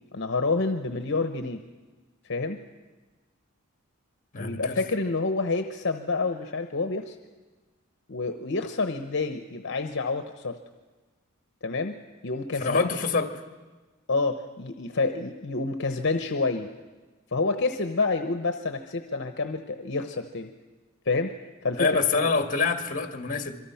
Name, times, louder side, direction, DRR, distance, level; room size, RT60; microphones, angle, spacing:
voice 1, 0.1-1.6 2.3-2.6 4.4-7.2 8.1-10.6 11.6-12.0 12.2-13.0 14.1-16.7 17.3-20.5 21.1-21.4 21.6-22.0, left 3 dB, 60° left, 7 dB, 1.0 m, -28 dB
voice 2, 4.3-4.8 12.6-13.3 21.8-23.6, left 4 dB, 40° left, 6 dB, 1.8 m, -26 dB
26.5 x 23.5 x 5.8 m, 1.3 s
head